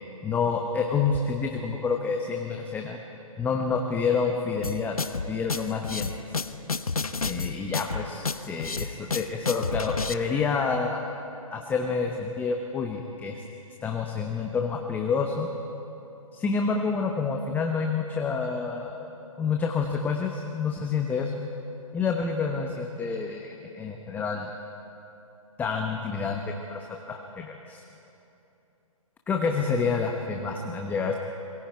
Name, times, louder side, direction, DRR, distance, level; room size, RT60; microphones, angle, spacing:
voice 1, 0.2-3.0 3.4-5.0 5.3-6.1 7.2-11.0 11.5-13.4 13.8-15.5 16.3-19.1 19.4-21.3 21.9-24.5 25.6-27.8 29.3-31.2, left 5 dB, 10° left, 2 dB, 1.0 m, -28 dB
sound 1, 4.6-10.1, left 4 dB, 80° left, 1.0 m, -30 dB
26.5 x 22.0 x 4.7 m, 2.9 s
figure-of-eight pair, 130°, 18 cm